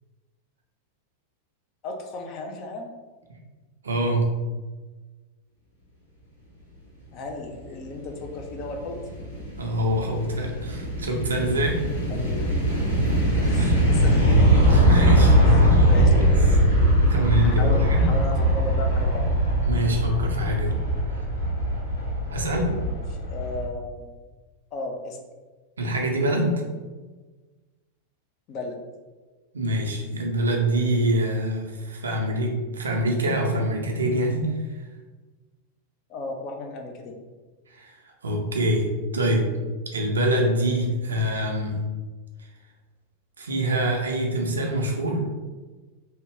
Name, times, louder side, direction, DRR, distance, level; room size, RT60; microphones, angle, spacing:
voice 1, 1.8-2.9 7.1-9.0 12.1-12.7 13.4-14.3 15.4-16.4 17.2-19.2 22.8-24.0 24.7-25.2 28.5-28.8 36.1-37.1, left 2 dB, 40° left, 2 dB, 0.5 m, -35 dB
voice 2, 3.8-4.2 9.6-11.8 13.6-13.7 14.7-16.2 17.1-18.1 19.7-20.8 22.3-22.7 25.8-26.5 29.5-34.5 37.7-38.0 38.2-38.9 39.1-39.5 39.9-41.7 43.4-45.2, right 1 dB, 70° right, 1 dB, 0.5 m, -25 dB
sound 1, 8.1-23.7, equal, 80° left, 1.1 m, -21 dB
2.8 x 2.1 x 3.5 m, 1.3 s
figure-of-eight pair, 90°, 0 cm